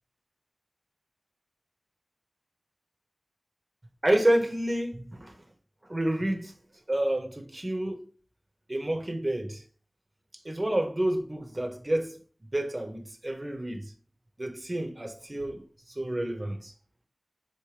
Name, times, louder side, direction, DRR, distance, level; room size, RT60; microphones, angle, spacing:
voice 1, 4.0-5.3 5.9-6.5 6.9-8.1 8.7-9.6 10.4-12.2 12.5-13.8 14.4-15.6 15.9-16.7, right 1 dB, 45° right, 0.9 m, -29 dB
4.4 x 3.1 x 3.2 m
wide cardioid pair, 40°, 0 cm